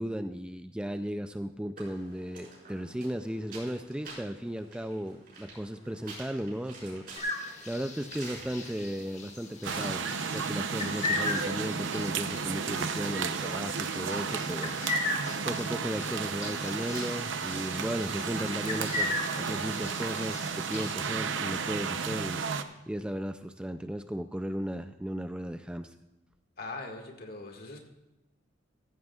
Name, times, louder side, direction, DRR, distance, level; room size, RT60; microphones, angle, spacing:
voice 1, 0.0-7.1 7.7-10.1 10.3-14.7 15.4-22.5 22.9-25.9, equal, 5° right, 8 dB, 0.4 m, -35 dB
sound 1, 1.8-18.5, right 3 dB, 50° right, 5.1 m, -50 dB
sound 2, 7.2-20.9, left 2 dB, 40° left, 1.4 m, -38 dB
sound 3, 9.6-22.6, right 5 dB, 85° right, 0.7 m, -33 dB
voice 2, 26.6-27.8, left 2 dB, 55° left, 2 dB, 1.9 m, -41 dB
15.0 x 14.5 x 2.4 m, 1.0 s
head